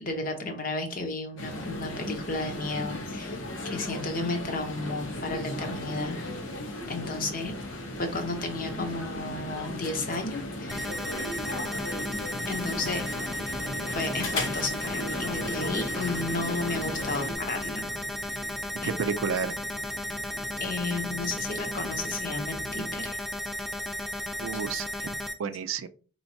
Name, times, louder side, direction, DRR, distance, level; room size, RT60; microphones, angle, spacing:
voice 1, 0.0-3.4 3.7-6.2 6.9-7.5 8.0-10.9 12.5-13.1 13.8-18.5 18.8-18.9 20.6-23.2, left 3 dB, 45° left, 0.8 m, -33 dB
sound 1, 1.4-17.3, left 1 dB, 75° left, 1.0 m, -36 dB
sound 2, 7.3-23.1, right 1 dB, 50° right, 0.7 m, -46 dB
sound 3, 10.7-25.3, equal, ahead, 0.3 m, -34 dB
voice 2, 18.8-19.6 24.4-25.9, right 6 dB, 85° right, 0.4 m, -31 dB
4.4 x 3.1 x 2.7 m
head